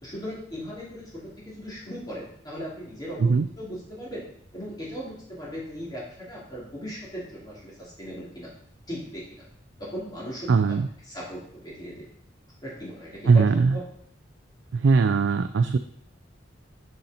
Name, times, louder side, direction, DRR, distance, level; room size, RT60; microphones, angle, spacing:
voice 1, 0.0-4.3 4.5-8.5 8.9-9.4 9.8-10.8 11.1-12.1 12.6-13.8, equal, 20° left, -6 dB, 2.7 m, -38 dB
voice 2, 10.5-10.9 13.3-13.7 14.7-15.8, right 4 dB, 70° right, 8 dB, 0.4 m, -20 dB
6.5 x 5.7 x 4.2 m, 0.64 s
head